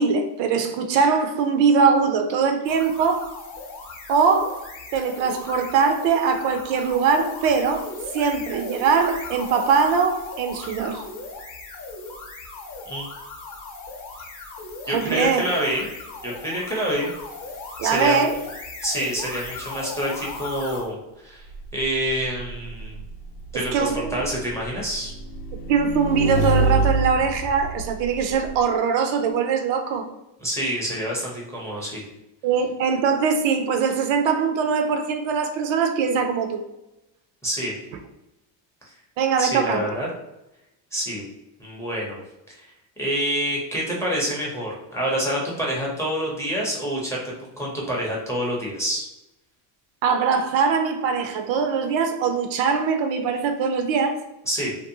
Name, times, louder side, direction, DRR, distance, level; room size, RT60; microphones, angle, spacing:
voice 1, 0.0-3.3 4.1-7.8 8.1-11.0 14.9-15.4 17.8-18.3 23.5-24.2 25.7-30.1 32.4-36.6 39.2-39.9 50.0-54.2, right 5 dB, 65° right, 6 dB, 0.5 m, -22 dB
sound 1, 2.6-20.9, left 3 dB, 40° left, 0.8 m, -37 dB
voice 2, 14.9-15.9 16.2-17.1 17.8-18.2 18.8-21.0 21.2-21.5 21.7-23.0 23.5-25.1 30.4-32.1 37.4-37.7 39.4-40.1 40.9-41.2 41.6-42.2 42.5-42.7 43.0-47.2 47.6-49.1 54.5-54.8, equal, 5° left, -4 dB, 0.5 m, -27 dB
Motorcycle / Engine, 21.5-28.6, right 2 dB, 85° left, 0.6 m, -27 dB
2.6 x 2.0 x 2.6 m, 0.93 s
cardioid pair, 120°, 49 cm